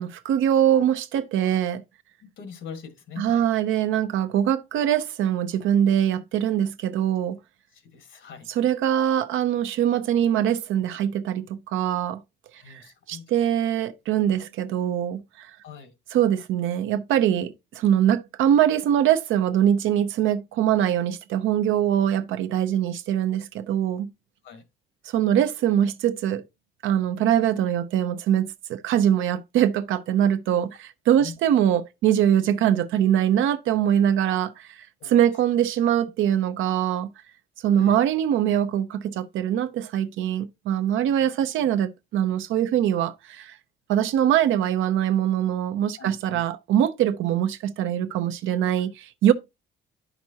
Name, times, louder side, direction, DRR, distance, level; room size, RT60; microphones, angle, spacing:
voice 1, 0.0-1.8 3.2-7.4 8.5-12.2 12.7-12.8 13.1-15.5 16.1-24.1 25.1-26.4 26.8-37.1 37.6-43.5 43.9-49.3, right 10 dB, 85° right, 0.6 m, -23 dB
voice 2, 2.4-3.4 7.7-8.5 12.6-13.3 15.6-15.9 24.4-24.6 31.2-31.4 35.0-35.2 37.7-38.0 46.0-46.4, left 6 dB, 70° left, 1.5 m, -42 dB
9.5 x 5.9 x 2.8 m
cardioid pair, 90°, 20 cm